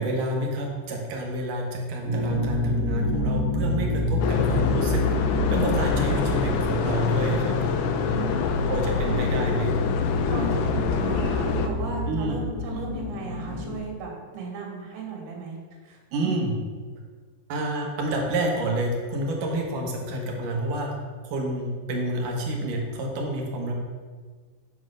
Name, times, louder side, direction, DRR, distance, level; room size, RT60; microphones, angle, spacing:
voice 1, 0.0-7.9 8.7-9.8 12.1-12.4 16.1-16.5 17.5-20.9 21.2-23.8, right 1 dB, 60° right, 0 dB, 2.5 m, -29 dB
sound 1, 2.0-13.8, left 2 dB, 60° left, 1.5 m, -27 dB
sound 2, 4.2-11.7, left 6 dB, 90° left, 3.0 m, -27 dB
voice 2, 8.1-9.2 10.2-15.6 15.8-16.5, right 3 dB, 90° right, 0 dB, 4.2 m, -37 dB
7.8 x 7.3 x 6.4 m, 1.5 s
omnidirectional pair, 5.1 m